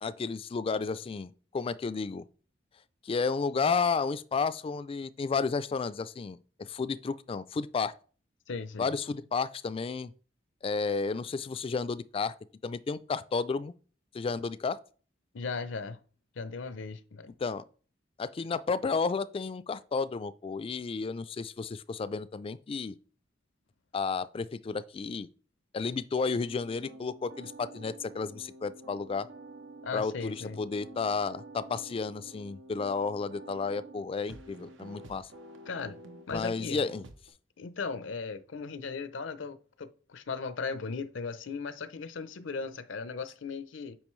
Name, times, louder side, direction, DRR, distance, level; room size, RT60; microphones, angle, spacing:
voice 1, 0.0-2.2 3.0-7.9 8.8-10.1 10.6-12.3 12.6-13.7 14.1-14.8 17.4-17.6 18.2-23.0 23.9-25.3 25.7-29.3 29.9-35.3 36.3-37.0, left 4 dB, 30° left, 0.3 m, -32 dB
voice 2, 8.5-8.9 15.3-16.0 16.4-17.3 29.8-30.6 35.7-36.0 36.3-36.8 37.6-44.0, left 4 dB, 80° left, 0.6 m, -37 dB
sound 1, 26.4-37.3, right 2 dB, 90° right, 0.9 m, -49 dB
8.7 x 5.0 x 3.1 m
head